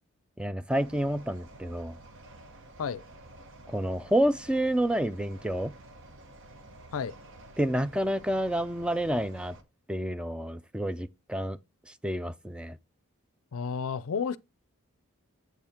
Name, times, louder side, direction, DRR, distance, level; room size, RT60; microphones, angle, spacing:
voice 1, 0.4-1.9 3.7-5.7 7.6-9.6 9.9-11.6 12.0-12.8, right 1 dB, 5° right, 0.3 m, -29 dB
sound 1, 0.7-9.6, right 2 dB, 55° right, 1.0 m, -50 dB
voice 2, 13.5-14.4, left 6 dB, 65° left, 0.4 m, -31 dB
8.0 x 4.4 x 3.6 m
head